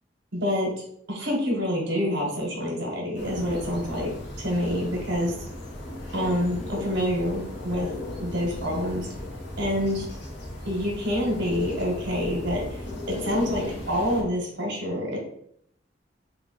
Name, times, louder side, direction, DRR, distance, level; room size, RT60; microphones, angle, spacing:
voice 1, 0.3-0.7 1.1-5.3 6.1-7.9 8.2-9.0 9.6-10.1 10.6-12.8 13.2-15.2, equal, 90° right, -2 dB, 1.1 m, -27 dB
sound 1, 3.1-14.2, left 1 dB, 65° left, 1.0 m, -36 dB
3.5 x 2.3 x 3.7 m, 0.69 s
head